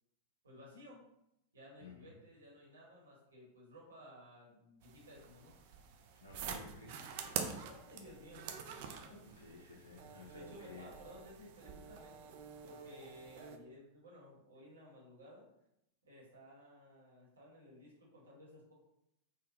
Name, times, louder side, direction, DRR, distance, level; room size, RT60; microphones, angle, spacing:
voice 1, 0.4-1.0 1.5-5.5 7.6-8.6 9.1-9.2 10.3-12.3 12.6-15.5 16.0-18.7, equal, 70° right, -4 dB, 1.0 m, -56 dB
sound 1, 4.8-13.6, right 7 dB, 50° right, 0.3 m, -47 dB
voice 2, 6.2-7.0 9.4-10.9, left 3 dB, 75° left, -3 dB, 0.5 m, -53 dB
3.6 x 2.1 x 2.6 m, 0.81 s
figure-of-eight pair, 90°, 0 cm